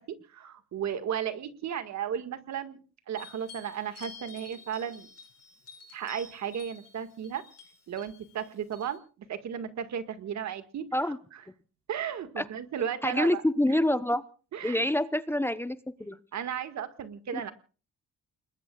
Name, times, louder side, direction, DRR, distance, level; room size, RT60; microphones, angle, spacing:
voice 1, 0.0-2.8 3.1-5.1 5.9-7.4 7.9-11.1 11.9-13.4 13.7-13.8 14.5-14.9 16.3-17.5, right 8 dB, 65° right, 9 dB, 1.9 m, -35 dB
sound 1, 3.2-9.0, left 5 dB, 50° left, 6.3 m, -50 dB
voice 2, 13.0-14.2 14.6-16.2 17.3-17.4, left 1 dB, 10° left, 12 dB, 0.9 m, -27 dB
29.5 x 20.5 x 2.4 m, 0.37 s
cardioid pair, 90°, 30 cm